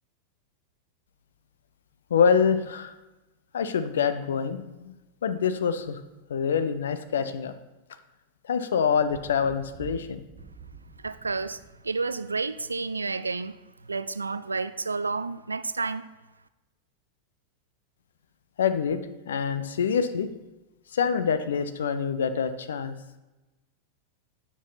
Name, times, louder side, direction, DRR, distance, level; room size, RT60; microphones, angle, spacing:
voice 1, 2.1-3.0 3.5-4.9 5.2-6.0 6.3-7.5 8.5-10.2 18.6-20.3 20.9-22.9, left 6 dB, 65° left, 11 dB, 0.6 m, -25 dB
Thunder, 9.0-12.9 14.2-14.3, right 4 dB, 40° right, 0.9 m, -47 dB
voice 2, 11.0-13.6 13.8-16.1, right 4 dB, 80° right, 14 dB, 0.3 m, -30 dB
9.2 x 6.1 x 4.1 m, 1.0 s
figure-of-eight pair, 90°, 0 cm